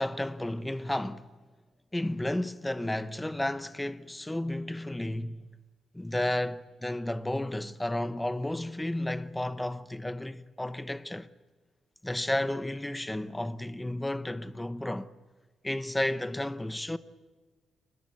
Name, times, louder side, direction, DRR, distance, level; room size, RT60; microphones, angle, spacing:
voice 1, 0.0-1.3 1.9-5.5 5.9-11.3 12.0-15.1 15.6-17.0, left 1 dB, 5° left, 0.9 m, -32 dB
30.0 x 22.0 x 8.4 m
cardioid pair, 175°, 0 cm